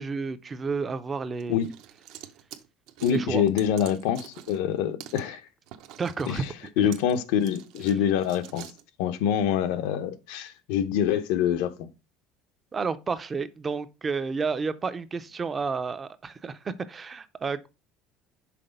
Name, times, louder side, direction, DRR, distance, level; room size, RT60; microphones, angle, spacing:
voice 1, 0.0-1.6 3.1-3.4 6.0-6.5 12.7-17.7, right 4 dB, 20° right, 0.4 m, -31 dB
sound 1, 1.4-4.7 5.0-5.2 5.7-8.8, right 11 dB, 60° right, 0.7 m, -46 dB
voice 2, 3.0-5.4 6.3-6.5 6.8-8.7 9.0-11.9, left 9 dB, 80° left, 0.7 m, -25 dB
5.9 x 4.1 x 5.1 m
cardioid pair, 175°, 0 cm